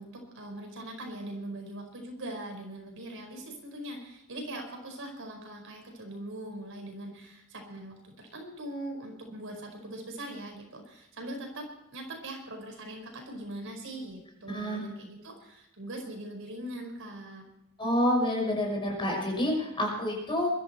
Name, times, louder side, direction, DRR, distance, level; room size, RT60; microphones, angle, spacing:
voice 1, 0.0-17.4, right 1 dB, 60° right, 2 dB, 5.0 m, -41 dB
voice 2, 14.5-14.8 17.8-20.5, left 1 dB, 25° left, 0 dB, 5.9 m, -28 dB
22.5 x 13.0 x 4.4 m, 0.85 s
head